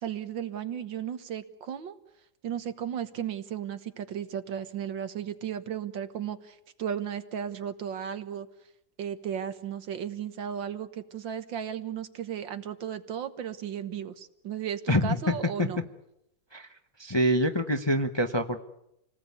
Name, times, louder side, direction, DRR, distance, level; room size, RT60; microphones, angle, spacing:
voice 1, 0.0-2.0 2.4-8.5 9.0-15.8, right 9 dB, 80° right, 10 dB, 2.0 m, -35 dB
voice 2, 14.9-15.7 16.5-16.7 17.0-18.6, equal, 20° left, 6 dB, 0.8 m, -26 dB
28.0 x 18.5 x 8.3 m, 0.83 s
omnidirectional pair, 2.0 m